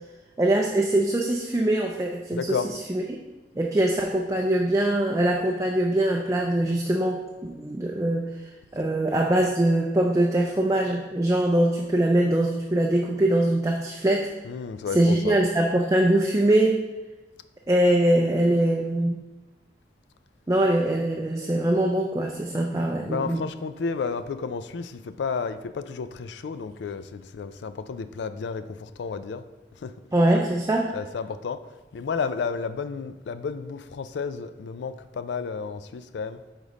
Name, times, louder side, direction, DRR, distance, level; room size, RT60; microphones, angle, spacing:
voice 1, 0.4-3.2 3.6-8.3 8.7-14.3 14.9-16.8 17.7-19.2 20.5-23.4 30.1-30.9, right 1 dB, 20° right, 0 dB, 0.4 m, -23 dB
voice 2, 2.3-2.7 14.4-15.4 23.1-29.4 29.8-29.9 30.9-31.6 31.9-36.4, left 5 dB, 90° left, 12 dB, 0.4 m, -32 dB
5.0 x 4.0 x 5.1 m, 1.2 s
head